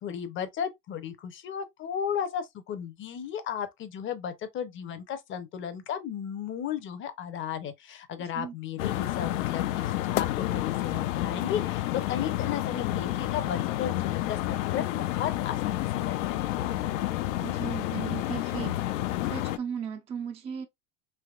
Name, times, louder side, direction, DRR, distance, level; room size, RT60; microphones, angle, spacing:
voice 1, 0.0-16.8, left 8 dB, 30° left, 0.6 m, -35 dB
sound 1, 8.8-19.6, left 15 dB, 80° left, 0.5 m, -30 dB
voice 2, 17.4-18.9 19.2-20.7, right 7 dB, 15° right, 0.3 m, -36 dB
3.4 x 2.8 x 2.3 m
supercardioid pair, 115°, 39 cm